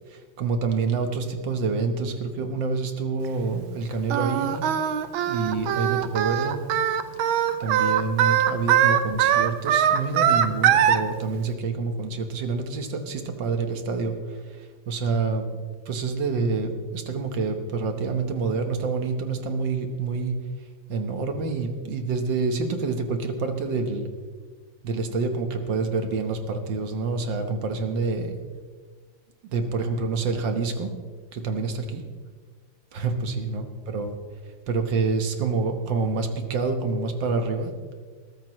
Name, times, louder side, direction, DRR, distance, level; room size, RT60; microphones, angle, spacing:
voice 1, 0.1-4.7 5.3-6.6 7.6-15.5 15.9-20.3 20.9-24.1 24.8-28.4 29.5-30.9 31.3-32.0 32.9-34.2 34.7-37.7, right 4 dB, 70° right, 6 dB, 1.9 m, -27 dB
Singing, 4.1-11.0, right 9 dB, 85° right, 1.6 m, -21 dB
21.0 x 13.5 x 3.2 m, 1.5 s
omnidirectional pair, 2.2 m